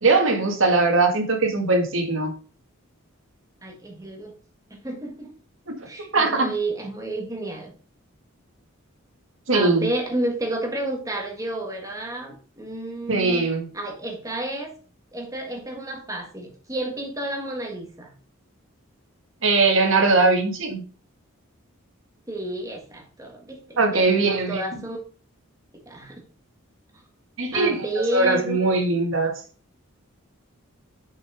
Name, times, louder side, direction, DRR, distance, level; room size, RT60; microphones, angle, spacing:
voice 1, 0.0-2.3 5.7-5.8 6.1-6.5 9.5-9.9 13.1-13.7 19.4-20.8 23.8-24.8 27.4-27.8 28.1-29.3, right 3 dB, 65° right, 4 dB, 1.7 m, -20 dB
voice 2, 3.6-4.4 4.7-5.3 5.9-7.7 9.5-13.5 13.7-14.7 15.1-18.1 22.3-25.0 25.8-26.2 26.9-27.0 27.5-28.8, right 1 dB, 15° right, 2 dB, 1.6 m, -31 dB
6.4 x 5.7 x 4.8 m, 0.39 s
head